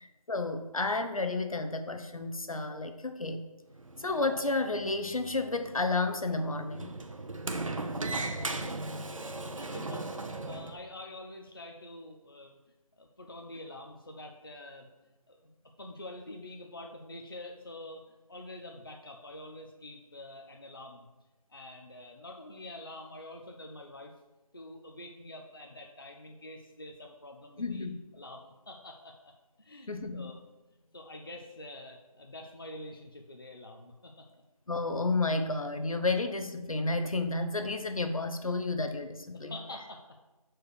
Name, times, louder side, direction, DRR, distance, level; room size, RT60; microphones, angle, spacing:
voice 1, 0.0-3.4 4.0-6.9 27.6-28.0 29.9-30.3 34.7-39.5, left 3 dB, 65° left, 8 dB, 0.8 m, -31 dB
Sliding door, 3.7-10.8, right 2 dB, 60° right, 0.7 m, -38 dB
voice 2, 8.2-8.6 9.0-9.2 9.5-12.6 13.0-14.9 15.3-15.4 15.8-18.0 18.3-21.1 21.5-24.1 24.5-27.9 28.1-30.4 30.9-34.3 39.3-40.0, left 1 dB, 40° left, 2 dB, 0.5 m, -46 dB
6.5 x 4.6 x 4.8 m, 1.1 s
figure-of-eight pair, 175°, 19 cm